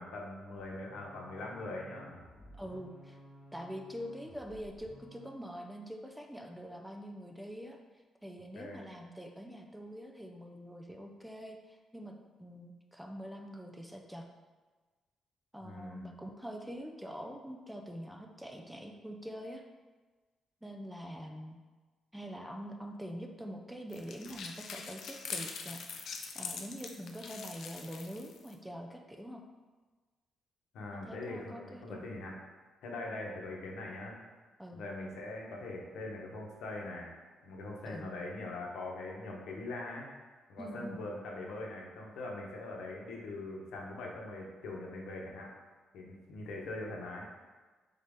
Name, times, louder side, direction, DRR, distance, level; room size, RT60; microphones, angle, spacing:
voice 1, 0.0-2.1 8.5-8.9 15.6-16.1 30.7-32.4 32.8-34.2 34.7-37.1 37.4-40.1 40.5-45.5 45.9-47.3, left 2 dB, 90° left, -1 dB, 1.0 m, -42 dB
sound 1, 0.5-5.4, equal, 15° left, 0.9 m, -55 dB
voice 2, 2.5-3.2 3.5-7.8 8.2-14.3 15.5-19.6 20.6-21.6 22.1-26.1 26.3-29.4 30.9-32.0 34.6-34.8 37.8-38.1 40.6-41.0, equal, 5° right, 2 dB, 0.3 m, -45 dB
sound 2, 23.9-28.5, left 5 dB, 60° left, 0.4 m, -43 dB
3.9 x 3.9 x 3.5 m, 1.3 s
cardioid pair, 165°, 0 cm